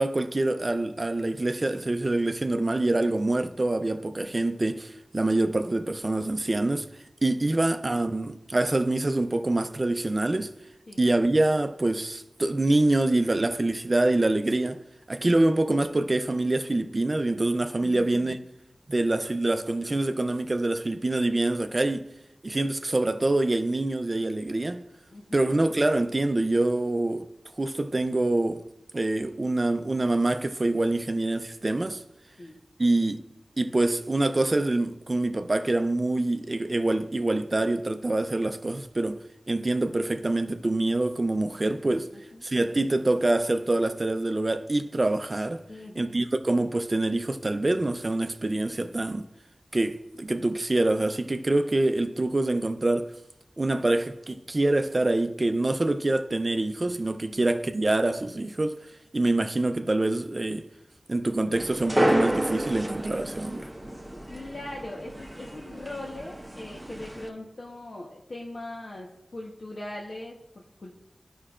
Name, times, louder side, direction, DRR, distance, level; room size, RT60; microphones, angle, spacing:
voice 1, 0.0-6.9 7.2-10.5 11.0-14.8 15.1-18.4 18.9-22.0 22.4-24.8 25.3-27.3 27.6-28.6 28.9-32.0 32.8-33.2 33.6-42.1 42.4-45.6 46.0-49.2 49.7-53.1 53.6-58.8 59.1-60.6 61.1-63.7, right 2 dB, 40° right, 0.5 m, -25 dB
voice 2, 17.8-18.4 25.1-25.5 32.4-32.6 42.1-42.5 45.7-46.2 57.3-57.5 64.1-70.9, left 1 dB, 65° left, 1.1 m, -41 dB
sound 1, 61.5-67.3, right 1 dB, 10° right, 1.1 m, -30 dB
13.5 x 5.4 x 2.5 m
wide cardioid pair, 70°, 0 cm